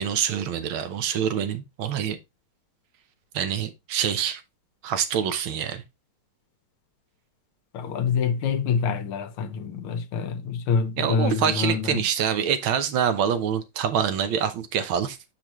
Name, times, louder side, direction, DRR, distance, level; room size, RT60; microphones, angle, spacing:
voice 1, 0.0-2.2 3.3-4.4 4.8-5.8 11.0-15.2, right 8 dB, 75° right, 1.6 m, -25 dB
voice 2, 7.7-12.0, left 6 dB, 90° left, 1.8 m, -26 dB
6.6 x 6.2 x 3.0 m
omnidirectional pair, 2.3 m